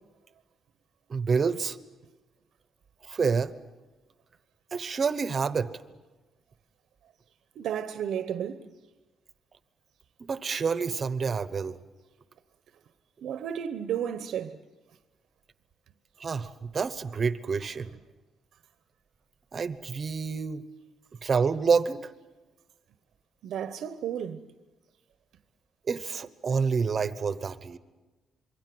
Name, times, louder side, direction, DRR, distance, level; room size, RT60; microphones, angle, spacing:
voice 1, 1.1-1.8 3.0-3.5 4.7-5.7 10.3-11.8 16.2-17.9 19.5-20.6 21.2-22.1 25.9-27.8, right 5 dB, 30° right, 1.0 m, -28 dB
voice 2, 7.5-8.7 13.2-14.6 23.4-24.4, right 9 dB, 70° right, 1.1 m, -33 dB
27.0 x 23.0 x 7.9 m
cardioid pair, 175°, 0 cm